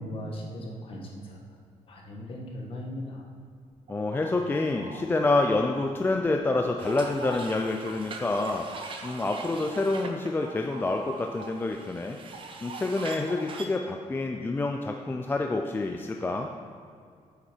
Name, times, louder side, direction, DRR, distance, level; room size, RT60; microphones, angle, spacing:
voice 1, 0.0-1.4 1.9-3.3, equal, 45° left, -1 dB, 1.6 m, -38 dB
sound 1, 3.6-6.2 6.5-11.7 12.0-13.7, right 3 dB, 65° right, 1.0 m, -44 dB
voice 2, 3.9-8.7 9.0-12.2 12.6-16.5, left 2 dB, 15° left, 3 dB, 0.4 m, -27 dB
sound 2, 6.8-13.7, right 4 dB, 40° right, 0.8 m, -44 dB
8.8 x 7.0 x 4.5 m, 2.3 s
cardioid pair, 155°, 13 cm